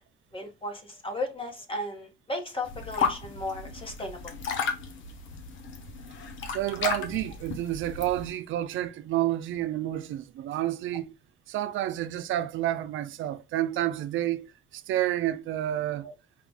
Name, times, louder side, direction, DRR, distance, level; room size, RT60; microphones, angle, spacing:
voice 1, 0.3-4.2 16.0-16.1, left 1 dB, 25° left, 1.3 m, -35 dB
sound 1, 2.6-8.3, left 6 dB, 75° left, 0.9 m, -34 dB
voice 2, 6.5-11.1 11.5-16.1, right 13 dB, 80° right, 0.5 m, -30 dB
4.9 x 2.4 x 3.5 m
cardioid pair, 90°, 20 cm